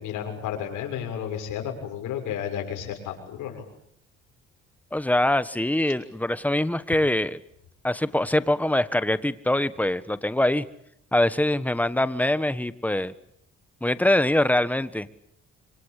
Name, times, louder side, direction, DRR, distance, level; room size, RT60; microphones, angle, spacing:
voice 1, 0.0-3.7, left 9 dB, 90° left, 3 dB, 6.6 m, -32 dB
voice 2, 4.9-7.4 7.8-10.6 11.1-13.1 13.8-15.1, left 1 dB, 5° left, 14 dB, 1.4 m, -23 dB
26.5 x 25.5 x 8.5 m, 0.72 s
cardioid pair, 90°, 30 cm